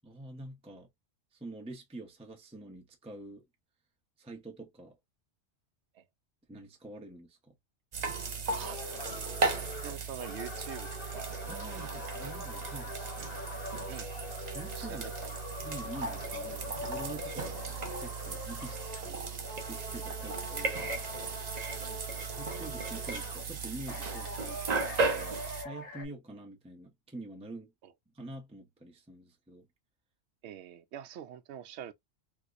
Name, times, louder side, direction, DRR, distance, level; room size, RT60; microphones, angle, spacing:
voice 1, 0.0-0.9 1.3-3.4 4.2-5.0 6.5-7.5 11.5-13.0 14.5-15.1 15.6-21.0 22.3-25.4 25.6-27.7 28.1-29.7, right 2 dB, 5° right, 0.6 m, -46 dB
sound 1, 7.9-25.6, right 4 dB, 45° right, 0.7 m, -36 dB
voice 2, 8.5-9.0 9.5-11.3 13.9-14.1 14.8-15.1 21.8-22.1 30.4-31.9, right 9 dB, 80° right, 0.9 m, -45 dB
sound 2, 8.6-19.2 19.4-23.4 23.9-26.0, left 2 dB, 55° left, 1.2 m, -43 dB
3.5 x 2.9 x 2.4 m
omnidirectional pair, 1.1 m